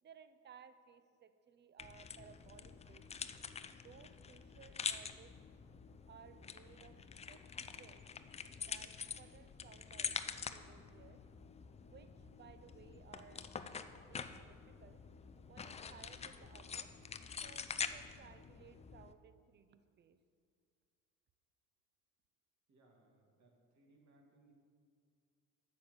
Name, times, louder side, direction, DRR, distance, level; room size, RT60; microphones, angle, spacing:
voice 1, 0.0-3.2 3.8-5.4 6.1-8.1 8.6-11.2 11.9-15.0 15.5-16.9 17.4-20.2, right 7 dB, 25° right, 12 dB, 0.6 m, -60 dB
sound 1, 1.8-19.1, left 6 dB, 15° left, 0.4 m, -46 dB
voice 2, 22.7-24.5, right 2 dB, 45° right, 0 dB, 2.5 m, -68 dB
8.6 x 6.2 x 7.1 m, 2.2 s
hypercardioid pair, 80°, 40 cm